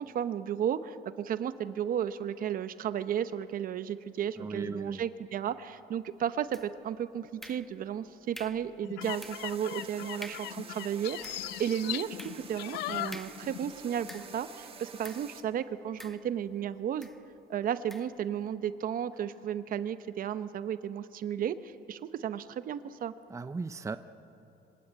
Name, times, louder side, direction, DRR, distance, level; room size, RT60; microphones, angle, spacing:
voice 1, 0.0-17.1 17.5-23.1, right 9 dB, 55° right, 13 dB, 1.0 m, -34 dB
voice 2, 4.4-5.0 23.3-24.0, right 4 dB, 20° right, 12 dB, 0.7 m, -37 dB
sound 1, 6.5-6.9 7.4-8.0 8.3-8.7 9.2-9.6 9.9-10.0 10.2-10.6 11.0-14.5 15.0-15.4 16.0-16.6 17.0-17.2 17.9-18.2, equal, ahead, 1.2 m, -49 dB
sound 2, 8.8-13.8 14.0-14.3, left 17 dB, 90° left, 0.6 m, -39 dB
sound 3, 9.0-15.4, right 5 dB, 35° right, 1.8 m, -48 dB
25.5 x 17.0 x 8.8 m, 2.9 s
cardioid pair, 110°, 17 cm